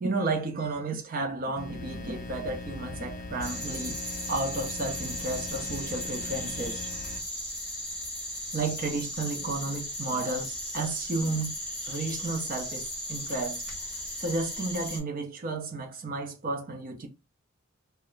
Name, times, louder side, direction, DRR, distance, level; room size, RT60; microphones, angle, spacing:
voice 1, 0.0-4.0 4.3-6.8 8.5-11.5 11.9-13.6 14.2-17.1, right 3 dB, 40° right, 0.5 m, -32 dB
sound 1, 1.5-7.2, left 2 dB, 35° left, 0.4 m, -40 dB
sound 2, 3.4-15.0, equal, 5° left, 0.7 m, -36 dB
2.4 x 2.0 x 3.0 m
head